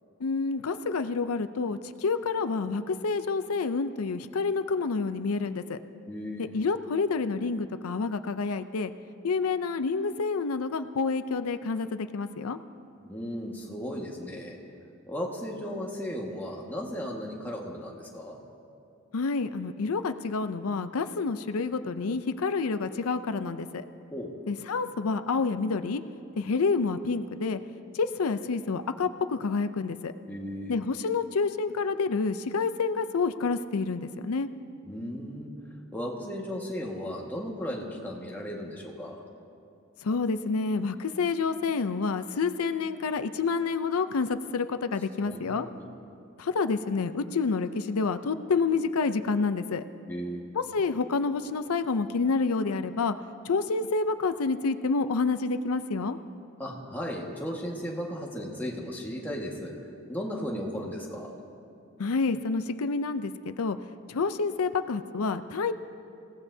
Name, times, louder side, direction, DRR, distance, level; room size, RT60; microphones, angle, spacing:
voice 1, 0.2-5.8 6.4-8.9 9.2-12.6 19.1-23.8 24.5-26.0 26.4-27.6 27.9-30.1 30.7-34.5 40.0-45.7 46.4-49.8 50.5-53.2 53.4-56.2 62.0-63.8 64.1-65.7, left 4 dB, 90° left, 10 dB, 0.5 m, -28 dB
voice 2, 6.1-6.5 13.1-14.6 15.1-18.4 24.1-24.3 30.3-30.7 34.8-35.5 35.9-39.2 45.2-45.9 50.1-50.4 56.6-59.7 60.1-61.3, equal, 10° left, -2 dB, 1.6 m, -35 dB
28.0 x 16.5 x 2.8 m, 2.6 s
head